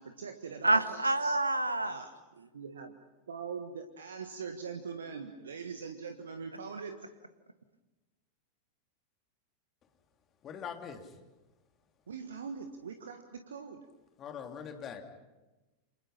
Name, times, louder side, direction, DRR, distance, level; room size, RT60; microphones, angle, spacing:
voice 1, 0.0-1.4 1.8-2.9 3.3-7.1 12.1-13.9, right 5 dB, 65° right, 7 dB, 1.6 m, -42 dB
voice 2, 0.6-2.0, right 2 dB, 85° right, 12 dB, 1.5 m, -27 dB
voice 3, 10.4-11.2 14.2-15.0, left 7 dB, 30° left, 5 dB, 3.1 m, -42 dB
29.0 x 27.5 x 5.8 m, 1.1 s
figure-of-eight pair, 90°, 0 cm